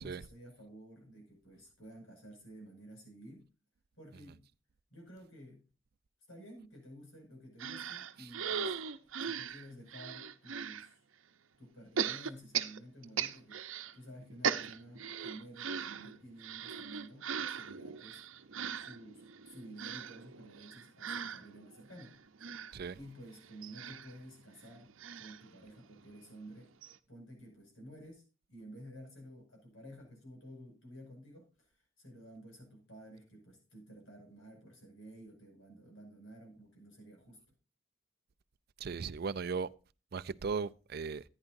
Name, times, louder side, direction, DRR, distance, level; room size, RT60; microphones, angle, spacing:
voice 1, 0.0-3.5 3.9-4.5 4.9-5.7 6.3-8.8 9.2-11.0 11.6-13.7 13.9-18.2 18.7-22.2 22.9-26.7 27.1-37.4, right 1 dB, 85° left, 5.8 m, -52 dB
sound 1, 7.6-10.9 12.0-13.9 14.2-26.2 26.5-26.6 26.8-27.0, right 7 dB, 85° right, 0.7 m, -39 dB
voice 2, 38.8-39.7 40.1-41.2, right 5 dB, 50° right, 0.4 m, -37 dB
14.5 x 9.8 x 2.6 m
head